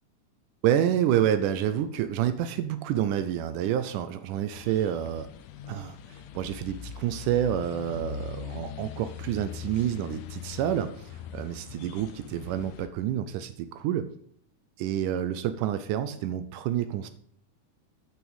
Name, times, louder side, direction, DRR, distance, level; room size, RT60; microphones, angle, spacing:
voice 1, 0.6-5.3 5.7-14.1 14.8-17.1, right 10 dB, 85° right, 11 dB, 2.2 m, -28 dB
sound 1, 4.5-12.9, left 7 dB, 80° left, 2.3 m, -41 dB
9.2 x 6.0 x 8.1 m, 0.64 s
omnidirectional pair, 3.7 m